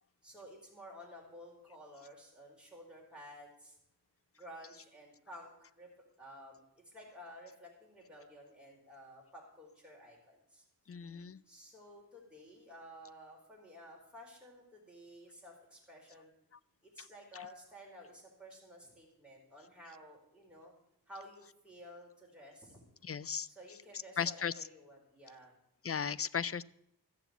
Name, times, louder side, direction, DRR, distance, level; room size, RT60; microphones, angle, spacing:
voice 1, 0.2-3.8 4.3-5.9 6.2-6.6 6.8-10.6 11.5-16.3 16.8-20.7 21.1-22.8 23.5-25.6, equal, 5° right, -3 dB, 4.7 m, -53 dB
voice 2, 10.9-11.4 23.0-23.5 24.2-24.5 25.8-26.6, left 7 dB, 35° left, 18 dB, 0.4 m, -35 dB
13.5 x 7.4 x 8.2 m, 0.76 s
wide cardioid pair, 90°, 40 cm